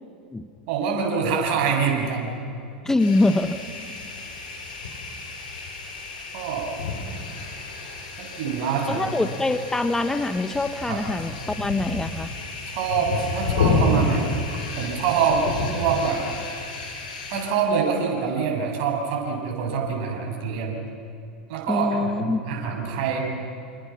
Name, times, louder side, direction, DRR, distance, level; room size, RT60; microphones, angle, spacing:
voice 1, 0.7-2.4 6.3-6.7 8.2-9.2 10.9-11.0 12.7-15.5 15.7-16.2 17.3-20.8 21.5-23.2, right 6 dB, 55° right, 0 dB, 7.4 m, -25 dB
voice 2, 2.8-3.6 8.9-12.3 21.7-22.4, left 2 dB, 10° left, 9 dB, 1.1 m, -24 dB
sound 1, 3.0-17.4, left 3 dB, 70° left, 6.9 m, -30 dB
28.5 x 28.0 x 6.0 m, 2.5 s
hypercardioid pair, 90°, 5 cm